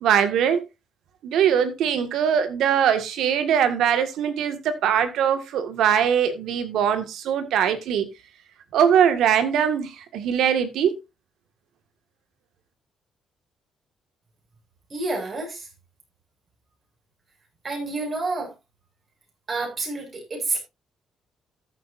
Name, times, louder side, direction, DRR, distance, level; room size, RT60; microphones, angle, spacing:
voice 1, 0.0-0.6 1.2-8.1 8.7-11.0, right 8 dB, 80° right, 1.9 m, -21 dB
voice 2, 14.9-15.7 17.6-18.5 19.5-20.6, right 3 dB, 40° right, 7.2 m, -29 dB
14.0 x 8.2 x 2.7 m
cardioid pair, 90°, 0 cm